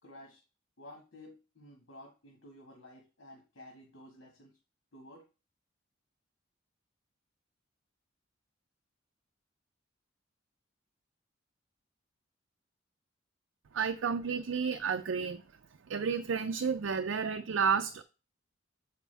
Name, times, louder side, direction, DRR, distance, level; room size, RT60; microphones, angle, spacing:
voice 1, 0.0-0.4 0.8-4.5 4.9-5.2, left 1 dB, 85° left, 1.8 m, -53 dB
voice 2, 13.7-15.4 15.9-18.0, right 6 dB, 75° right, 0.5 m, -31 dB
7.3 x 5.0 x 3.4 m
head